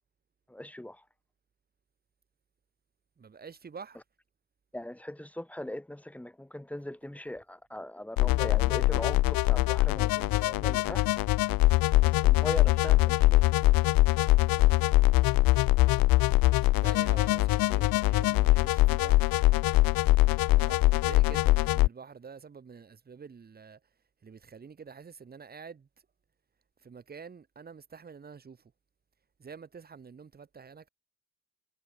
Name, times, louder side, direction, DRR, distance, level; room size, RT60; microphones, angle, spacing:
voice 1, 0.5-1.0 4.7-11.1 12.0-13.5, left 1 dB, 5° left, 3.9 m, -40 dB
voice 2, 3.2-4.0 16.6-19.3 20.5-23.8 24.2-25.9 26.8-28.7 29.4-30.9, right 6 dB, 25° right, 4.1 m, -47 dB
sound 1, 8.2-21.9, left 18 dB, 75° left, 0.6 m, -23 dB
cardioid pair, 165°, 35 cm